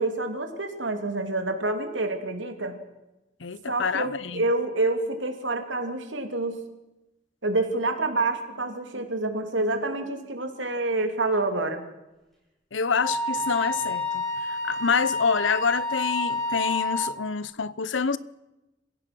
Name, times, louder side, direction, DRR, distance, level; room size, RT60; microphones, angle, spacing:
voice 1, 0.0-2.8 3.7-6.6 7.4-11.8, right 2 dB, 80° right, 3.0 m, -27 dB
voice 2, 3.4-4.4 12.7-18.2, left 5 dB, 80° left, 0.8 m, -27 dB
Wind instrument woodwind instrument, 13.0-17.2, left 2 dB, ahead, 6.7 m, -29 dB
27.0 x 16.5 x 6.2 m
head